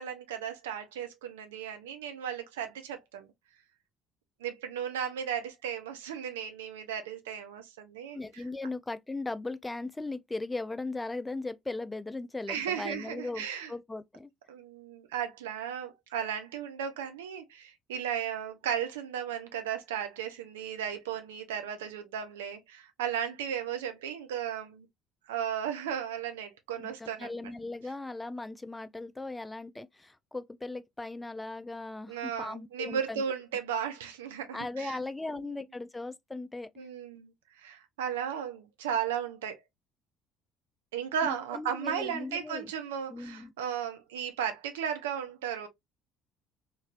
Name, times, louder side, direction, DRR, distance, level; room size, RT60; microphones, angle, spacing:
voice 1, 0.0-3.3 4.4-8.4 12.5-13.7 14.5-24.9 25.3-27.5 32.1-35.0 36.8-39.6 40.9-45.7, right 8 dB, 75° right, 0.5 m, -35 dB
voice 2, 8.1-14.3 26.8-33.2 34.5-36.7 41.2-42.7 43.1-43.5, left 2 dB, 15° left, 0.4 m, -38 dB
3.0 x 2.5 x 2.4 m
figure-of-eight pair, 55°, 0 cm